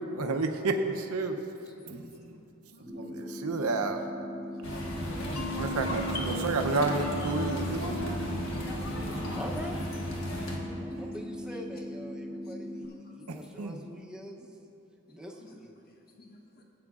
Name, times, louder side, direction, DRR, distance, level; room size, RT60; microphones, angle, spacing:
voice 1, 0.1-1.4 1.9-2.0 2.9-4.0 5.6-6.0 6.4-8.1 13.6-13.8, right 3 dB, 80° right, 5 dB, 0.6 m, -30 dB
voice 2, 1.6-3.6 6.1-6.3 7.2-7.4 8.3-8.4 11.0-11.2 11.5-11.6 12.4-13.2 15.4-15.5 15.9-16.6, left 2 dB, 45° left, 0 dB, 1.2 m, -49 dB
sound 1, 2.9-12.9, left 1 dB, 10° left, 1.0 m, -39 dB
sound 2, 4.6-10.6, equal, 60° left, 1.4 m, -34 dB
Mallet percussion, 5.4-10.1, right 3 dB, 80° left, 0.7 m, -41 dB
voice 3, 9.0-9.9 10.7-14.5 15.1-15.7, equal, 5° right, 0 dB, 0.7 m, -44 dB
16.0 x 8.6 x 2.4 m, 2.9 s
head